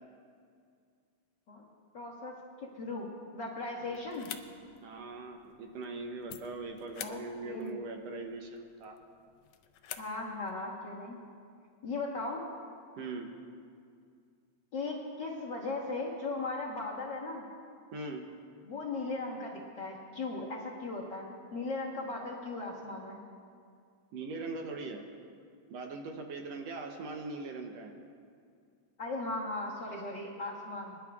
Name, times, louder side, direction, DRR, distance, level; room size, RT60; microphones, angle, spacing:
voice 1, 1.9-4.3 7.0-7.7 10.0-11.2 11.8-12.4 14.7-17.4 18.6-23.2 29.0-31.0, left 3 dB, 50° left, -4 dB, 1.4 m, -38 dB
sound 1, 3.9-10.6, left 10 dB, 80° left, 1.5 m, -50 dB
voice 2, 4.8-9.0 13.0-13.3 17.9-18.2 24.1-25.1 25.7-27.9, right 3 dB, 70° right, 3 dB, 1.8 m, -41 dB
26.0 x 10.5 x 2.4 m, 2.3 s
omnidirectional pair, 3.3 m